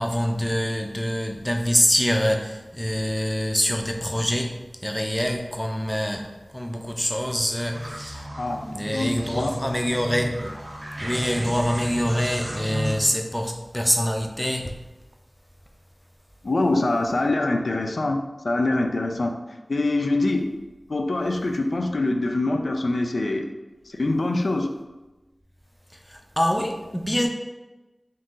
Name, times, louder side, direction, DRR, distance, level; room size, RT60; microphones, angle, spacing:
voice 1, 0.0-4.6 4.8-8.3 8.7-10.5 11.0-14.8 26.1-27.3, equal, 5° left, 2 dB, 0.5 m, -25 dB
sound 1, 7.7-12.9, equal, 55° right, 0.7 m, -34 dB
voice 2, 8.4-9.5 16.4-19.4 19.7-20.5 20.9-23.5 23.9-24.7, left 2 dB, 85° left, 4 dB, 0.3 m, -24 dB
3.7 x 2.7 x 3.7 m, 1.1 s
wide cardioid pair, 60°, 0 cm